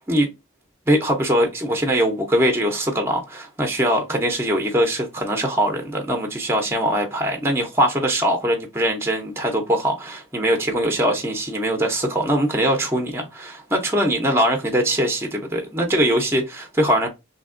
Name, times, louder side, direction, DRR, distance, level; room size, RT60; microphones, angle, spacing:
voice 1, 0.9-17.1, right 1 dB, 10° right, 0.5 m, -22 dB
3.3 x 2.7 x 2.5 m
head